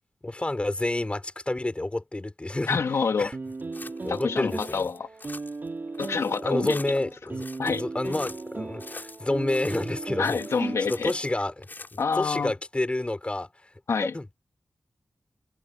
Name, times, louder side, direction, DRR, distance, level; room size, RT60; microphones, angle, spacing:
voice 1, 0.2-2.8 3.2-3.4 4.0-4.9 6.4-10.4 10.9-13.5 14.1-14.3, left 2 dB, 25° left, 5.1 m, -29 dB
voice 2, 2.7-3.3 4.1-5.1 6.0-7.0 7.6-7.8 10.2-11.1 12.0-12.5 13.9-14.1, left 5 dB, 80° left, 2.2 m, -27 dB
sound 1, 3.3-11.4, right 3 dB, 45° right, 3.7 m, -36 dB
sound 2, 3.5-4.2 4.5-5.7 5.9-7.1 7.4-8.5 8.8-9.9 10.2-11.3 11.6-12.2, left 3 dB, 45° left, 7.0 m, -45 dB
cardioid pair, 60°, 5 cm